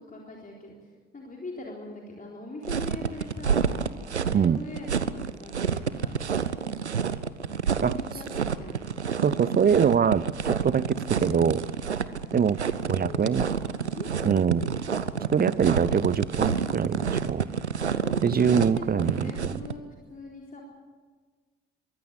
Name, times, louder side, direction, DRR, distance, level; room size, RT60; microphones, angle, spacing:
voice 1, 0.0-3.7 4.2-4.9 5.1-6.2 7.7-8.8 12.1-12.6 12.9-14.9 18.0-20.6, left 2 dB, 25° left, -2 dB, 3.9 m, -41 dB
sound 1, 2.6-19.7, right 6 dB, 90° right, 0.6 m, -29 dB
voice 2, 9.2-11.7 12.3-12.6 12.9-13.5 14.2-14.7 15.3-17.4 17.8-17.9 18.2-19.6, right 7 dB, 30° right, 20 dB, 0.7 m, -24 dB
23.0 x 16.0 x 8.4 m, 1.4 s
figure-of-eight pair, 45°, 33 cm